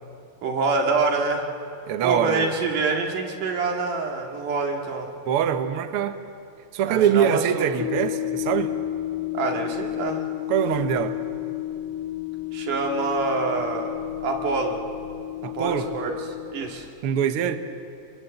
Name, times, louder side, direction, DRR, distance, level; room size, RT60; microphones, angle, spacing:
voice 1, 0.4-1.4 2.0-5.1 6.8-7.7 9.3-10.2 12.5-14.0 14.2-14.8 15.5-16.1 16.5-16.9, right 3 dB, 60° right, 1 dB, 3.7 m, -26 dB
voice 2, 1.9-2.5 5.2-6.2 6.7-8.7 10.5-11.2 15.4-15.9 17.0-17.6, right 9 dB, 85° right, 8 dB, 1.2 m, -23 dB
sound 1, 7.8-16.9, left 15 dB, 85° left, 2.5 m, -31 dB
27.5 x 22.0 x 7.9 m, 2.5 s
omnidirectional pair, 4.2 m